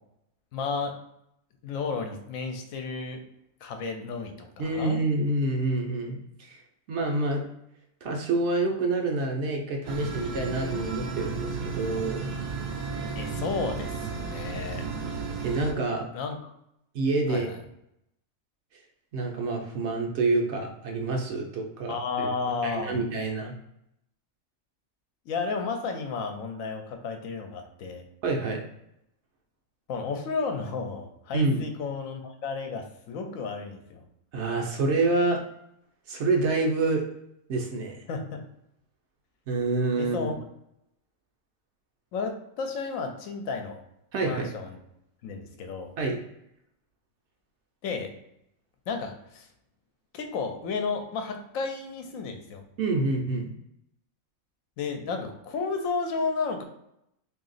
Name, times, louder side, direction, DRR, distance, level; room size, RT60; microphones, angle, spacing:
voice 1, 0.5-0.9 1.6-3.2 3.6-5.0 13.2-14.8 16.1-16.5 17.3-17.6 21.9-23.0 25.3-28.1 29.9-34.0 38.1-38.4 40.0-40.3 42.1-43.8 44.2-44.8 45.2-45.9 47.8-48.1 48.9-49.5 50.1-52.6 54.8-56.6, left 4 dB, 80° left, 5 dB, 1.0 m, -32 dB
voice 2, 4.6-6.6 6.9-7.4 8.0-12.3 14.5-14.8 15.4-16.0 16.9-17.5 19.1-22.3 22.6-23.5 28.2-28.6 31.3-31.6 34.3-35.4 36.1-37.0 37.5-38.0 39.5-40.3 44.1-44.5 46.0-46.2 52.8-53.5, right 2 dB, 65° right, 1 dB, 0.8 m, -27 dB
sound 1, 9.8-15.7, right 4 dB, 80° right, 0.4 m, -33 dB
2.8 x 2.6 x 4.0 m, 0.79 s
omnidirectional pair, 1.4 m